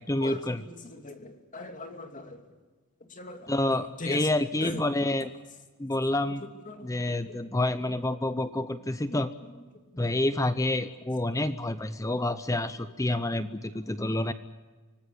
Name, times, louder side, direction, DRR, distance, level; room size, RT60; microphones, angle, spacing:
voice 1, 0.1-0.6 3.5-5.3 5.8-6.4 6.8-9.3 10.0-14.3, left 1 dB, 15° left, 12 dB, 0.7 m, -28 dB
voice 2, 0.8-2.4 3.1-3.5 3.8-4.3 4.6-4.8 6.7-7.2, left 2 dB, 35° left, 6 dB, 2.7 m, -39 dB
25.5 x 19.0 x 8.4 m, 1.3 s
head